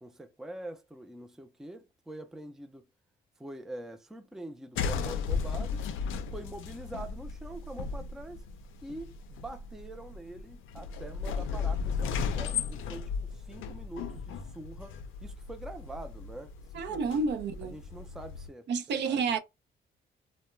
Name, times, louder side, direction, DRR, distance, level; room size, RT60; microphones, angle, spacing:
voice 1, 0.0-2.8 3.4-5.8 6.3-8.4 8.8-17.2 17.6-19.2, right 1 dB, ahead, 0.4 m, -45 dB
sound 1, 4.7-18.5, left 5 dB, 80° left, 0.4 m, -36 dB
voice 2, 16.7-17.8 18.7-19.4, right 4 dB, 65° right, 0.5 m, -30 dB
2.2 x 2.0 x 3.1 m
cardioid pair, 90°, 20 cm